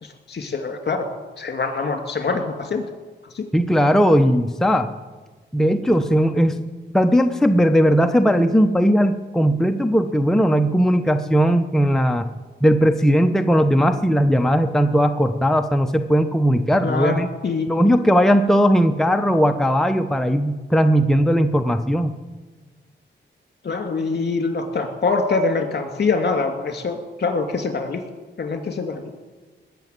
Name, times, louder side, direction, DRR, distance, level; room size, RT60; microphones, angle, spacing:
voice 1, 0.0-1.1 1.4-2.8 3.3-3.5 16.8-17.7 23.6-28.0 28.4-29.1, left 4 dB, 55° left, 6 dB, 2.6 m, -24 dB
voice 2, 3.5-4.9 5.5-12.3 12.6-17.3 17.7-22.1, equal, ahead, 6 dB, 0.8 m, -18 dB
20.0 x 7.1 x 9.2 m, 1.3 s
cardioid pair, 85°, 20 cm